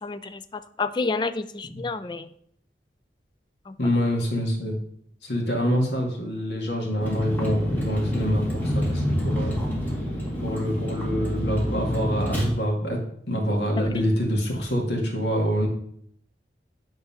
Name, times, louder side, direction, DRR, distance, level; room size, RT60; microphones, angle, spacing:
voice 1, 0.0-2.3 3.7-3.8, left 3 dB, 25° left, 13 dB, 0.3 m, -30 dB
voice 2, 3.8-4.7 5.2-9.6 10.4-13.0 13.3-15.7, equal, 80° left, 0 dB, 2.0 m, -26 dB
Vehicle, 7.0-12.5, equal, 10° left, 1.9 m, -27 dB
9.5 x 3.9 x 5.6 m, 0.69 s
head